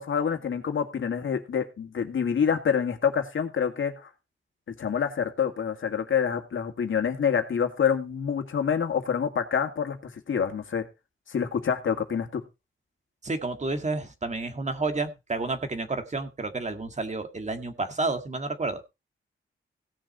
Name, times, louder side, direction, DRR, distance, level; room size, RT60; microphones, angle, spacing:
voice 1, 0.0-4.1 4.7-10.9 11.3-12.4, left 7 dB, 70° left, 5 dB, 2.1 m, -27 dB
voice 2, 13.2-18.8, right 3 dB, 35° right, 7 dB, 1.8 m, -30 dB
17.0 x 6.5 x 4.2 m, 0.26 s
wide cardioid pair, 100°, 21 cm